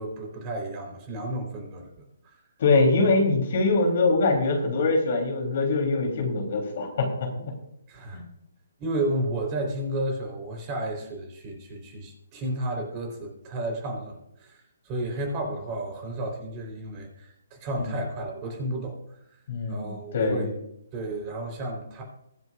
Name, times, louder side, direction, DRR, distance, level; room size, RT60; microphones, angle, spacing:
voice 1, 0.0-1.9 2.2-2.3 7.9-8.2 8.8-19.0 19.7-20.6 20.9-22.0, right 1 dB, 25° right, 1 dB, 4.1 m, -32 dB
voice 2, 2.6-7.1 7.4-7.5 17.8-18.0 19.5-20.5, left 3 dB, 50° left, 2 dB, 3.6 m, -23 dB
23.0 x 7.9 x 2.6 m, 0.80 s
figure-of-eight pair, 140°, 0 cm